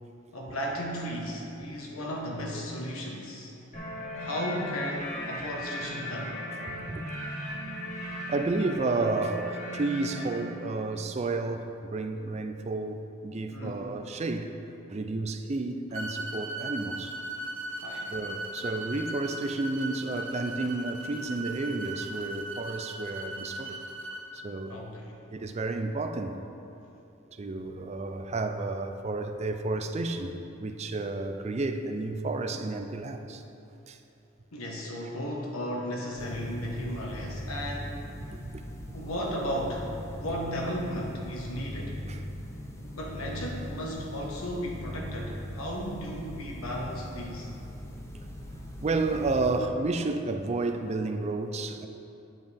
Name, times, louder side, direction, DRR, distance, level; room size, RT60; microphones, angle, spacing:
voice 1, 0.3-3.5 4.2-6.4 13.5-13.9 17.7-18.1 24.7-25.2 34.5-38.0 38.9-39.9 40.2-42.0 42.8-47.5, equal, 80° left, -1 dB, 1.3 m, -35 dB
sound 1, 3.7-10.4, equal, 35° left, 1.6 m, -37 dB
voice 2, 6.7-7.0 8.3-14.5 14.9-17.2 18.1-23.8 24.3-24.8 25.3-26.4 27.3-33.4 33.9-34.0 38.3-38.6 42.1-42.2 48.8-51.9, right 3 dB, 30° right, 7 dB, 0.4 m, -31 dB
sound 2, 15.9-24.2, right 1 dB, 65° right, 0.9 m, -38 dB
sound 3, 36.2-49.6, equal, 15° left, 0.6 m, -40 dB
9.2 x 7.9 x 3.4 m, 2.8 s
head